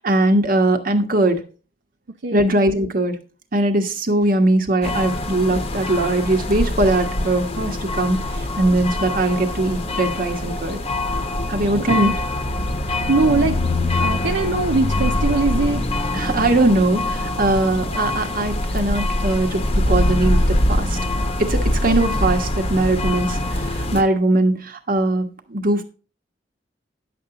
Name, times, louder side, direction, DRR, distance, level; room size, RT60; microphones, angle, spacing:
voice 1, 0.0-1.4 2.3-3.2 3.5-8.2 8.6-10.8 11.5-12.1 16.1-21.0 21.4-25.8, right 2 dB, 50° right, 6 dB, 1.3 m, -20 dB
voice 2, 2.2-2.5 11.8-12.2 13.1-13.6 14.0-15.8, right 3 dB, 75° right, 5 dB, 0.7 m, -21 dB
sound 1, 4.8-24.0, left 1 dB, 35° left, 0.9 m, -23 dB
10.5 x 7.1 x 3.9 m, 0.36 s
head